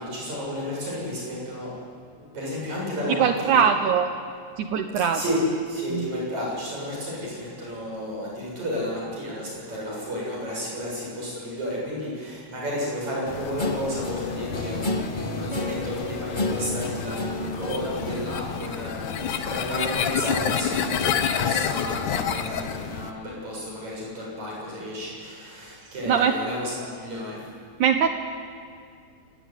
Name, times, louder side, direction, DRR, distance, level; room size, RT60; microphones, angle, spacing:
voice 1, 0.0-1.7 2.3-3.6 5.1-5.4 5.7-27.4, equal, 55° right, -4 dB, 9.0 m, -32 dB
voice 2, 3.1-4.1 4.6-5.5 5.9-6.1 26.1-26.4 27.8-28.1, right 7 dB, 70° right, 6 dB, 2.2 m, -22 dB
sound 1, 13.3-23.1, left 8 dB, 70° left, 2.5 m, -29 dB
Guitar, 13.6-19.4, left 1 dB, 30° left, 0.9 m, -31 dB
27.5 x 17.0 x 9.7 m, 2.2 s
omnidirectional pair, 4.0 m